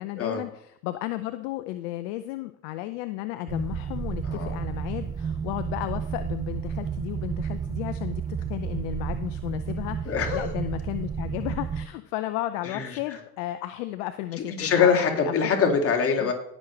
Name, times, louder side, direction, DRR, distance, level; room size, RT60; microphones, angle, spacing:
voice 1, 0.0-15.3 16.2-16.3, left 15 dB, 60° left, 10 dB, 0.7 m, -34 dB
sound 1, 3.5-11.9, right 7 dB, 10° right, 0.4 m, -31 dB
voice 2, 10.1-10.5 12.6-12.9 14.6-16.3, left 6 dB, 30° left, 2 dB, 2.4 m, -23 dB
18.5 x 6.4 x 3.2 m, 0.76 s
hypercardioid pair, 80°, 44 cm